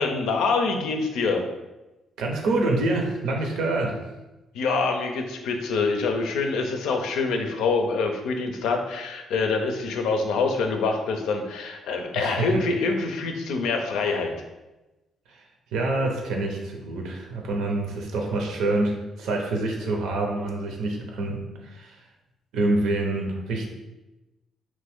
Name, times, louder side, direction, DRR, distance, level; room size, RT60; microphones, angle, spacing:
voice 1, 0.0-1.4 4.5-14.3, left 4 dB, 85° left, 4 dB, 0.5 m, -25 dB
voice 2, 2.2-4.0 12.1-12.6 15.3-15.4 15.7-22.0 22.5-23.7, right 2 dB, 85° right, 1 dB, 0.7 m, -26 dB
3.0 x 2.6 x 3.5 m, 1.0 s
cardioid pair, 90°, 0 cm